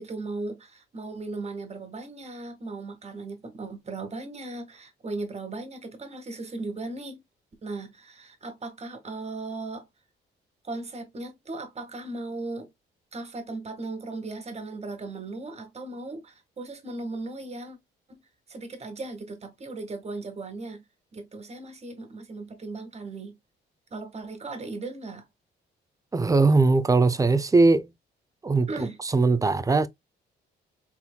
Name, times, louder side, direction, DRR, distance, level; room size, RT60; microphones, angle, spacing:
voice 1, 0.0-7.2 7.6-9.9 10.6-12.7 13.1-17.8 18.1-18.2 18.5-20.8 21.1-23.3 23.9-25.2 28.7-29.0, right 3 dB, 35° right, 1.6 m, -37 dB
voice 2, 26.1-27.9 28.4-28.7 29.0-29.9, right 3 dB, 15° right, 0.6 m, -20 dB
4.2 x 3.6 x 2.2 m
cardioid pair, 90°, 20 cm